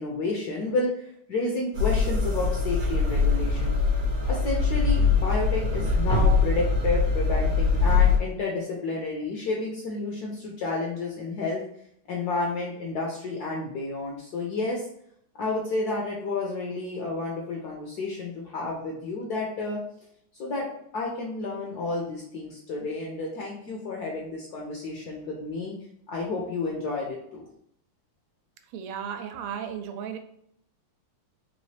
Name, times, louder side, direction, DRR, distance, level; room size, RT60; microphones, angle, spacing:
voice 1, 0.0-3.7 4.3-11.6 12.1-14.9 15.4-19.8 20.4-20.7 20.9-25.7 26.1-27.4, left 3 dB, 70° left, -2 dB, 0.9 m, -31 dB
sound 1, 1.7-8.2, left 4 dB, 65° right, 0.9 m, -23 dB
voice 2, 28.7-30.2, right 8 dB, 90° right, 6 dB, 1.5 m, -34 dB
4.1 x 3.0 x 3.3 m, 0.70 s
omnidirectional pair, 2.4 m